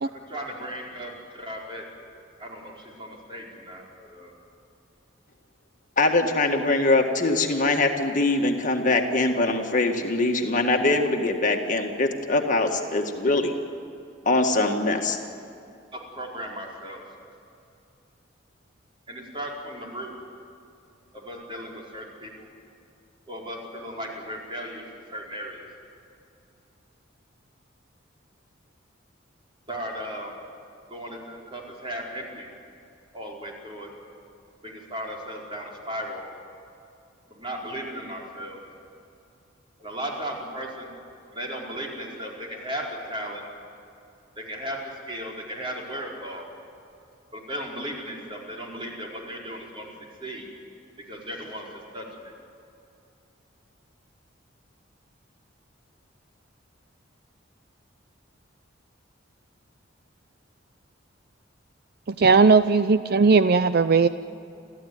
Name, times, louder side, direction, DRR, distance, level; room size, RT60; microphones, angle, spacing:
voice 1, 0.0-1.9 2.4-4.3 15.9-17.0 19.1-20.2 21.1-22.5 23.3-24.8 25.1-25.6 29.7-30.4 30.9-32.5 33.1-33.9 34.6-36.2 37.3-38.6 39.8-40.9 41.3-43.4 44.4-46.5 47.3-50.5 51.0-52.3, equal, 25° right, -2 dB, 4.7 m, -36 dB
voice 2, 6.0-13.5 14.3-15.2, left 2 dB, 40° left, 3 dB, 1.8 m, -23 dB
voice 3, 62.2-64.1, right 4 dB, 50° right, 12 dB, 0.5 m, -17 dB
30.0 x 14.0 x 9.6 m, 2.6 s
head